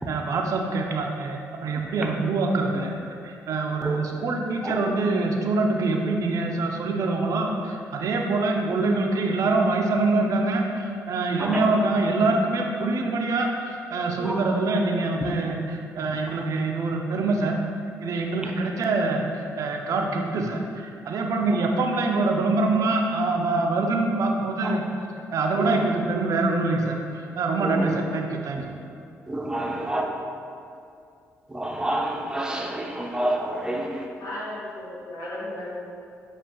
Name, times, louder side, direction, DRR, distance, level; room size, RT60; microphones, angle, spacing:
voice 1, 0.1-17.6 18.0-24.8 25.3-28.6, right 3 dB, 65° right, 2 dB, 0.5 m, -25 dB
voice 2, 29.3-30.1 31.5-34.1, right 1 dB, 10° right, 0 dB, 0.6 m, -29 dB
voice 3, 34.2-35.7, left 1 dB, 65° left, -6 dB, 1.3 m, -35 dB
7.3 x 2.5 x 2.9 m, 2.5 s
supercardioid pair, 65°, 6 cm